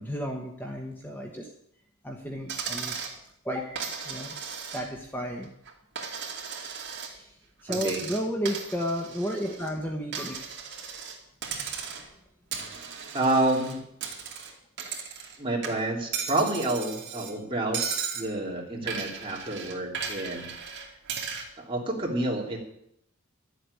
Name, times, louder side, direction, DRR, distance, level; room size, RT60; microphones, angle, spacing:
voice 1, 0.0-1.5 2.0-3.0 3.4-5.5 7.0-10.5, equal, 10° left, 1 dB, 1.1 m, -33 dB
Coin (dropping), 2.5-3.2 3.8-5.1 5.4-7.1 7.7-9.7 10.1-11.2 11.4-12.1 12.5-15.4 15.6-17.3 17.7-18.3 18.9-21.5, right 6 dB, 50° right, 2.5 m, -36 dB
voice 2, 7.7-8.0 13.1-13.8 15.2-20.5 21.6-22.6, right 2 dB, 25° right, -2 dB, 3.2 m, -29 dB
12.0 x 8.1 x 9.8 m, 0.76 s
head